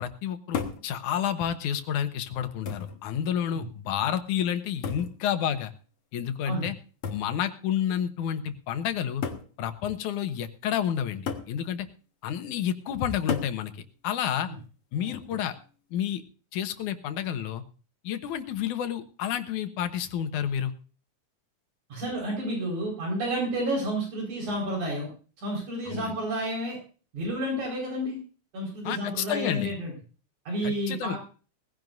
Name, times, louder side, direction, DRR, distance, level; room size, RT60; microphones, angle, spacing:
voice 1, 0.0-5.7 6.1-6.8 7.1-9.2 9.6-11.9 12.2-13.7 14.0-14.5 14.9-15.6 15.9-16.2 16.5-17.6 18.0-20.7 25.9-26.1 28.8-29.7 30.6-31.2, left 9 dB, 85° left, 9 dB, 2.6 m, -30 dB
sound 1, 0.5-0.9 1.9-2.0 2.7-3.0 4.8-5.2 7.0-7.3 8.4-8.5 9.2-9.5 11.3-11.6 13.3-13.6 15.1-15.5, left 6 dB, 55° left, 2.1 m, -33 dB
voice 2, 21.9-25.1 25.4-26.8 27.1-28.2 28.5-29.9 30.5-31.2, right 1 dB, 70° right, -1 dB, 6.1 m, -30 dB
20.0 x 16.0 x 2.6 m, 0.38 s
omnidirectional pair, 3.5 m